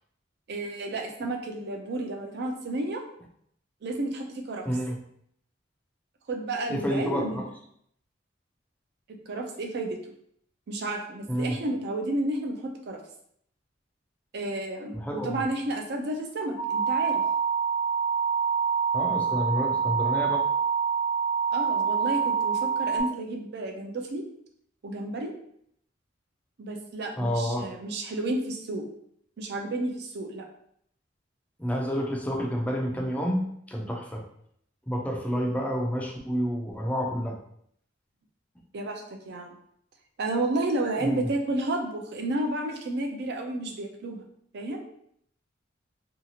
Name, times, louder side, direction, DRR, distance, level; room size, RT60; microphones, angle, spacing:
voice 1, 0.5-3.0 3.8-4.6 6.3-7.4 9.1-10.1 10.7-13.0 14.3-17.2 21.5-24.2 24.8-25.3 26.6-28.8 29.4-30.4 38.7-39.5 40.2-44.2 44.5-44.8, right 2 dB, 55° right, 3 dB, 0.5 m, -31 dB
voice 2, 4.7-5.0 6.7-7.4 11.3-11.6 14.9-15.4 18.9-20.5 27.2-27.7 31.6-34.2 34.9-37.4 41.0-41.3, equal, 5° left, 0 dB, 0.4 m, -29 dB
sound 1, 16.6-23.0, right 6 dB, 85° left, 0.7 m, -26 dB
2.7 x 2.4 x 2.8 m, 0.70 s
head